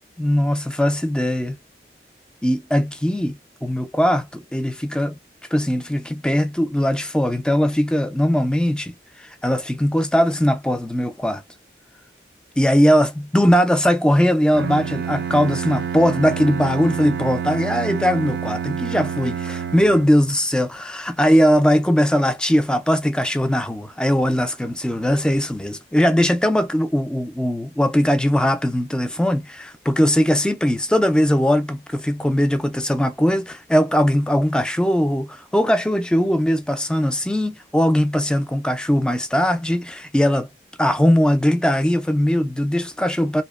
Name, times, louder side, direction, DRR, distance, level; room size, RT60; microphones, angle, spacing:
voice 1, 0.2-1.6 2.4-5.2 5.5-11.4 12.6-40.5 40.8-43.4, equal, 5° left, 0.3 m, -20 dB
Bowed string instrument, 14.5-20.4, right 7 dB, 65° right, 0.4 m, -28 dB
2.8 x 2.0 x 2.3 m
head